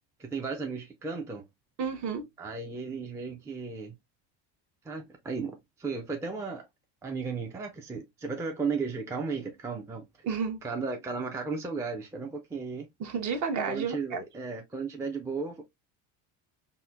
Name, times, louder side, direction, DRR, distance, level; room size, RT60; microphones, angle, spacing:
voice 1, 0.2-1.4 2.4-3.9 4.8-6.6 7.0-10.1 10.6-12.9 13.7-15.6, right 4 dB, 5° right, 0.4 m, -35 dB
voice 2, 1.8-2.3 10.2-10.6 13.0-14.2, right 6 dB, 40° right, 0.9 m, -31 dB
4.1 x 2.1 x 2.4 m
supercardioid pair, 100°, 44 cm